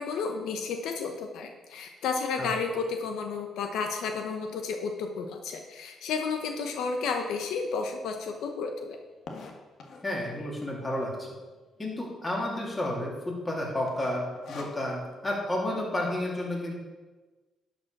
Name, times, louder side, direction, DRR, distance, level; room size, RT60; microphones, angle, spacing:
voice 1, 0.0-9.0, left 5 dB, 85° left, 5 dB, 0.8 m, -32 dB
sound 1, 6.8-6.9 7.4-7.5 7.7-7.8 8.1-10.2 10.9-11.3 11.6-11.7 11.9-12.0 12.6-12.9 13.2-13.5 13.9-15.1, left 3 dB, 65° left, 1.5 m, -44 dB
voice 2, 10.0-11.3 11.8-16.8, left 1 dB, 20° left, -2 dB, 3.0 m, -31 dB
11.0 x 5.2 x 5.9 m, 1.2 s
cardioid pair, 90°, 0 cm